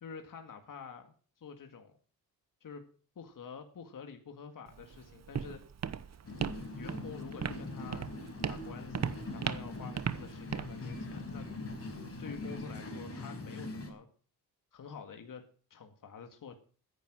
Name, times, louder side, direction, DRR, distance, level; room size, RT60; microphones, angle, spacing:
voice 1, 0.0-1.9 2.6-2.9 3.2-5.6 6.4-8.1 8.5-11.8 12.2-14.1 14.7-16.5, left 6 dB, 60° left, 5 dB, 2.0 m, -48 dB
Walk footsteps, 4.7-12.6, right 7 dB, 45° right, 1.0 m, -39 dB
sound 1, 6.2-13.9, left 2 dB, 40° left, 4.8 m, -42 dB
14.0 x 10.5 x 6.2 m, 0.40 s
cardioid pair, 95°, 37 cm